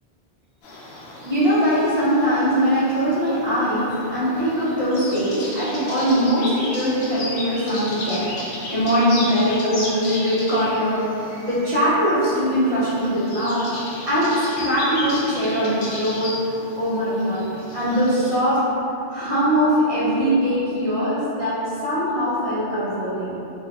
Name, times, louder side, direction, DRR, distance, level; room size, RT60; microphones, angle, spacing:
sound 1, 0.6-18.4, left 1 dB, 80° left, 0.9 m, -35 dB
voice 1, 1.2-11.0 11.4-13.7 14.1-16.3 16.8-17.4 17.7-18.6 19.1-21.6 21.8-23.3, equal, 45° right, -10 dB, 0.6 m, -21 dB
2.6 x 2.2 x 2.8 m, 2.9 s
omnidirectional pair, 1.1 m